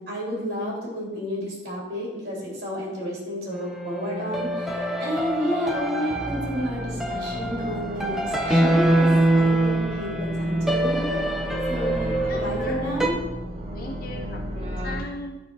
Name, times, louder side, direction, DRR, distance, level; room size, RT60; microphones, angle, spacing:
voice 1, 0.0-11.0 11.7-13.2, equal, 55° right, -5 dB, 3.0 m, -31 dB
sound 1, 3.5-13.1, right 1 dB, ahead, 0.6 m, -25 dB
sound 2, 6.1-15.0, equal, 30° right, 1.0 m, -34 dB
voice 2, 12.3-12.8 13.7-15.4, left 2 dB, 50° left, 2 dB, 0.6 m, -37 dB
11.0 x 4.4 x 4.6 m, 1.1 s
head